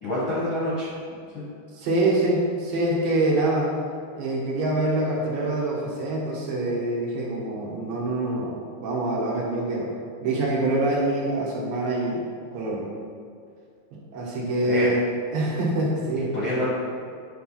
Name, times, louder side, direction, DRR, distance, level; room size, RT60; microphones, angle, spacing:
voice 1, 0.0-0.9 1.3-1.4 14.6-14.9 16.1-16.6, left 1 dB, 55° left, -8 dB, 1.4 m, -27 dB
voice 2, 1.7-3.7 4.1-9.9 10.2-12.2 12.5-12.8 13.9-15.1 15.3-16.3, right 2 dB, 70° right, -4 dB, 3.1 m, -25 dB
9.1 x 4.6 x 5.8 m, 2.2 s
omnidirectional pair, 4.4 m